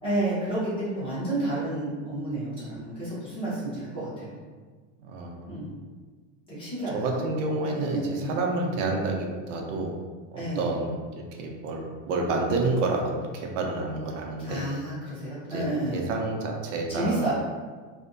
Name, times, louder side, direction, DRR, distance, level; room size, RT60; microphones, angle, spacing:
voice 1, 0.0-4.4 5.5-5.7 6.5-7.2 7.6-8.3 10.3-10.7 14.4-16.0 16.9-17.3, right 1 dB, 15° left, -10 dB, 0.7 m, -30 dB
voice 2, 5.0-5.7 6.9-9.9 10.3-14.7 15.5-15.6 15.9-17.3, right 3 dB, 85° right, 1 dB, 0.6 m, -29 dB
2.5 x 2.1 x 2.5 m, 1.5 s
supercardioid pair, 175°, 37 cm